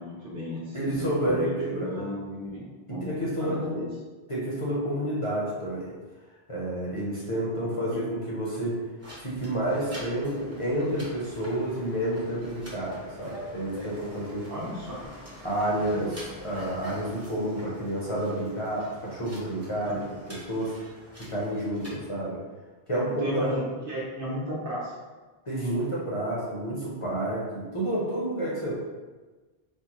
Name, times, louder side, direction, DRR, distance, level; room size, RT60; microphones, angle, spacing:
voice 1, 0.0-3.1 3.4-3.8 7.9-8.0 14.5-15.0 19.9-20.1 23.0-24.9, equal, 60° right, -5 dB, 1.0 m, -35 dB
voice 2, 0.7-1.9 2.9-3.8 4.3-5.9 6.5-8.8 9.2-14.5 15.4-20.8 21.3-22.4 22.9-23.6 25.5-28.7, right 1 dB, 35° left, -6 dB, 0.8 m, -29 dB
sound 1, 9.0-22.0, equal, 15° right, 0.7 m, -45 dB
4.4 x 2.1 x 2.9 m, 1.3 s
omnidirectional pair, 1.1 m